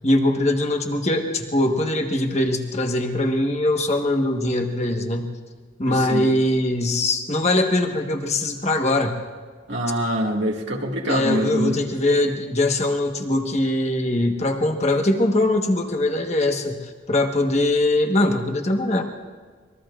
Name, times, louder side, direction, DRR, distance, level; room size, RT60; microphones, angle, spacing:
voice 1, 0.0-5.3 5.8-9.1 11.1-19.0, left 1 dB, 35° left, 3 dB, 1.3 m, -22 dB
voice 2, 5.9-6.3 9.7-11.8, equal, 70° right, 0 dB, 1.9 m, -24 dB
25.0 x 21.5 x 2.5 m, 1.5 s
head